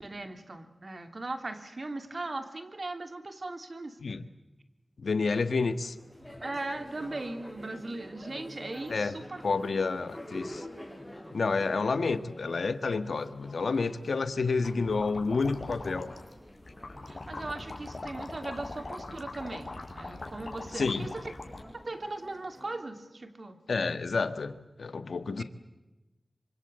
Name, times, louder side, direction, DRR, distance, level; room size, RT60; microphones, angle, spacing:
voice 1, 0.0-4.0 6.4-9.4 17.1-21.2 21.9-23.6 25.4-25.5, right 2 dB, 55° right, 7 dB, 3.1 m, -39 dB
voice 2, 5.0-5.9 8.9-9.2 9.4-10.6 11.3-16.1 20.7-21.1 23.7-25.4, left 4 dB, 85° left, 11 dB, 1.5 m, -29 dB
sound 1, 5.3-22.8, left 1 dB, ahead, 7.6 m, -48 dB
sound 2, 14.9-21.6, left 2 dB, 50° left, 6.0 m, -42 dB
26.0 x 25.5 x 8.1 m, 1.0 s
cardioid pair, 45°, 0 cm